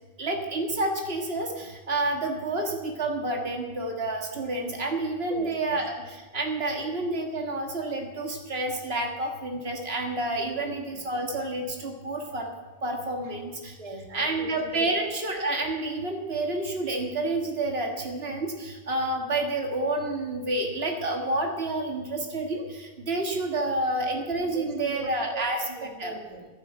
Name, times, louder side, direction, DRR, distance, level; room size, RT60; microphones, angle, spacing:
voice 1, 0.2-12.5 12.8-13.7 14.1-25.6 26.0-26.2, right 2 dB, 75° right, 2 dB, 2.0 m, -29 dB
voice 2, 5.3-5.8 10.4-10.8 13.8-14.9 24.5-26.5, right 5 dB, 35° right, 3 dB, 1.5 m, -40 dB
11.5 x 11.0 x 7.6 m, 1.2 s
omnidirectional pair, 1.0 m